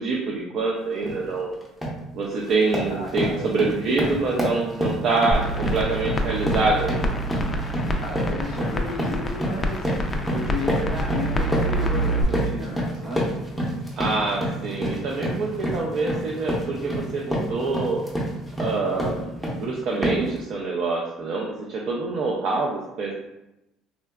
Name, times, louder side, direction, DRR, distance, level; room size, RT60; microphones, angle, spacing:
voice 1, 0.0-1.5 2.1-7.2 14.0-18.0 18.6-23.1, right 3 dB, 55° right, -2 dB, 0.4 m, -26 dB
sound 1, 1.0-1.2 1.6-2.0 2.4-19.6 20.0-20.4, equal, 5° right, 0.7 m, -28 dB
voice 2, 2.9-3.5 8.0-9.9 10.3-13.2, left 1 dB, 90° right, -5 dB, 1.2 m, -33 dB
sound 2, 5.3-12.2, right 1 dB, 20° left, 0.3 m, -27 dB
3.6 x 2.2 x 2.2 m, 0.91 s
cardioid pair, 130°, 0 cm